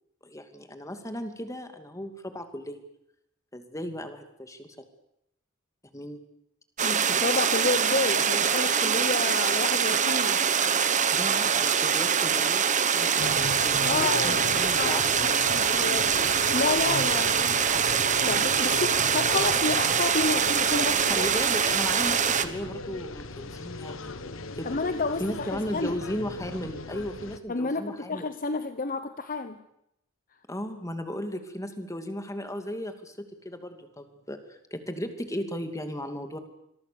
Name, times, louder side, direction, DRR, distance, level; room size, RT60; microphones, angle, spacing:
voice 1, 0.2-2.8 3.5-4.8 5.9-6.2 11.1-12.7 12.9-15.1 16.2-16.4 21.1-24.7 25.2-28.3 30.5-36.4, equal, 15° left, 7 dB, 2.6 m, -36 dB
voice 2, 6.8-10.4 13.8-14.9 15.2-16.2 16.5-17.6 18.2-21.3 24.6-26.0 27.5-29.6, left 3 dB, 45° left, 10 dB, 1.0 m, -30 dB
sound 1, 6.8-22.5, right 7 dB, 40° right, 1.3 m, -24 dB
sound 2, 13.2-27.4, left 3 dB, 70° left, 1.4 m, -38 dB
26.5 x 22.0 x 7.1 m, 0.78 s
head